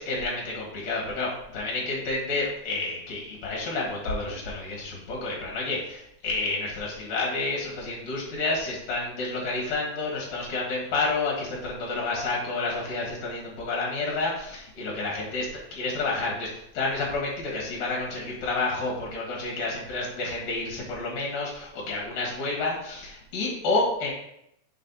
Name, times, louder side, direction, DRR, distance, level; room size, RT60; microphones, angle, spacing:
voice 1, 0.0-16.5 16.7-24.1, left 3 dB, 55° left, -3 dB, 2.1 m, -30 dB
5.4 x 4.6 x 4.0 m, 0.77 s
omnidirectional pair, 4.9 m